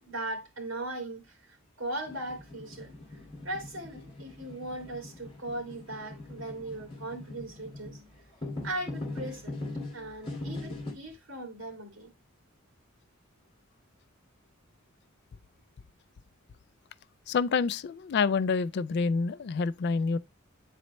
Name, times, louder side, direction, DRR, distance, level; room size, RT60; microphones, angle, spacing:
voice 1, 0.0-2.9 3.4-8.0 8.6-9.5 9.9-12.1, right 2 dB, 70° right, 2.4 m, -38 dB
sound 1, 2.0-10.9, left 2 dB, 30° left, 2.0 m, -41 dB
voice 2, 17.3-20.2, left 5 dB, 55° left, 0.4 m, -27 dB
9.0 x 4.2 x 3.0 m
head